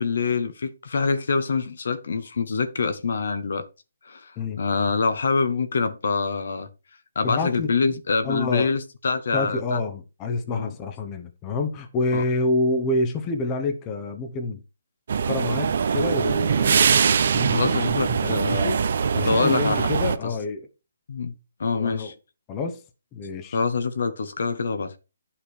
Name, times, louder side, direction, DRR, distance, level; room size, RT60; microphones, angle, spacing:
voice 1, 0.0-3.7 4.0-4.3 4.6-6.7 7.1-9.8 10.5-10.8 12.1-12.2 17.5-18.8 19.2-19.9 21.1-21.3 21.6-22.1 23.5-25.0, left 4 dB, 60° left, 1.3 m, -25 dB
voice 2, 7.2-7.7 8.2-8.7 9.3-14.6 15.2-16.9 17.3-18.8 19.1-20.7 21.7-22.1 22.5-22.8 23.1-23.6, left 3 dB, 15° left, 1.0 m, -27 dB
sound 1, 15.1-20.2, right 6 dB, 50° right, 0.8 m, -22 dB
10.0 x 5.8 x 4.7 m
hypercardioid pair, 170°, 0 cm